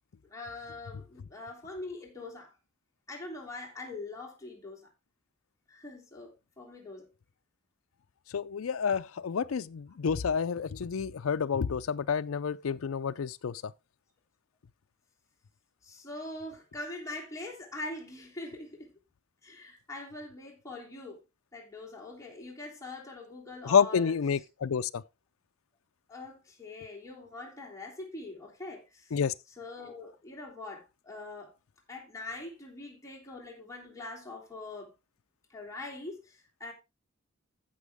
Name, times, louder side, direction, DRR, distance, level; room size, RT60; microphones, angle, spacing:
voice 1, 0.2-2.5 3.1-4.9 5.7-7.1 15.8-18.9 19.4-21.2 21.5-24.1 26.1-29.2 29.6-31.5 31.9-34.9 35.5-36.7, left 2 dB, 15° left, 3.2 m, -43 dB
voice 2, 8.3-13.7 23.6-25.0 29.1-29.3, left 6 dB, 90° left, 0.5 m, -29 dB
14.5 x 6.1 x 3.5 m
head